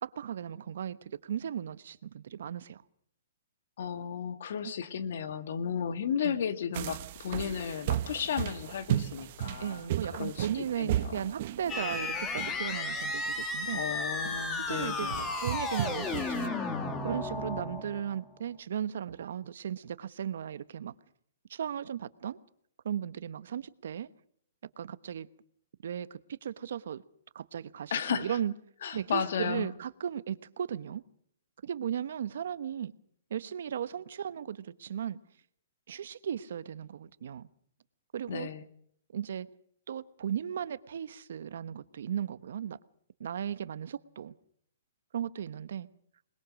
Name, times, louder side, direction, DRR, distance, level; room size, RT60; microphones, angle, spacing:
voice 1, 0.0-2.8 4.6-4.7 6.2-6.4 9.6-13.8 14.7-15.1 15.4-16.5 17.0-20.9 21.5-22.4 22.8-24.1 24.8-25.3 25.8-27.0 27.3-28.5 28.9-31.0 31.6-32.9 33.3-35.2 35.9-37.5 38.1-38.5 39.1-39.5 39.9-42.8 43.2-44.3 45.1-45.9, right 9 dB, 65° right, 1.1 m, -36 dB
voice 2, 3.8-11.3 13.7-15.3 27.9-28.4 28.8-29.7 38.3-38.7, left 7 dB, 60° left, 1.9 m, -34 dB
sound 1, 6.7-16.5, right 12 dB, 40° right, 1.1 m, -36 dB
sound 2, 11.7-18.2, left 3 dB, 15° left, 2.0 m, -34 dB
26.0 x 21.0 x 6.4 m
hypercardioid pair, 165°, 0 cm